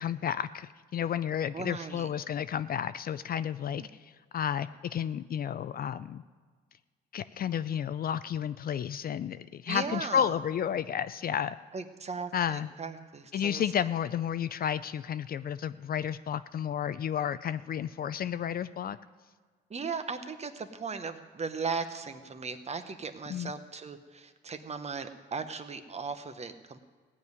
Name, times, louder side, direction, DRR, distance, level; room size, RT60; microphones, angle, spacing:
voice 1, 0.0-6.2 7.1-11.6 12.3-12.7 13.3-19.0 23.3-23.5, left 9 dB, 50° left, 14 dB, 0.4 m, -32 dB
voice 2, 1.5-2.1 3.8-3.9 9.7-10.3 11.7-13.6 19.7-26.8, right 5 dB, 35° right, 9 dB, 1.0 m, -37 dB
16.0 x 5.4 x 9.5 m, 1.5 s
cardioid pair, 90°, 20 cm